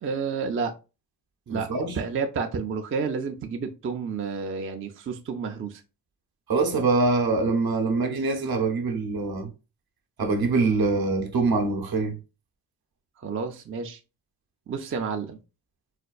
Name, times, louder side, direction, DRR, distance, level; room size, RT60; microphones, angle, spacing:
voice 1, 0.0-0.8 1.5-5.8 13.2-14.0 14.7-15.4, right 5 dB, 30° right, 0.4 m, -30 dB
voice 2, 1.5-2.0 6.5-9.5 10.2-12.2, right 3 dB, 60° right, 0.8 m, -24 dB
4.2 x 2.2 x 2.3 m
cardioid pair, 75°, 42 cm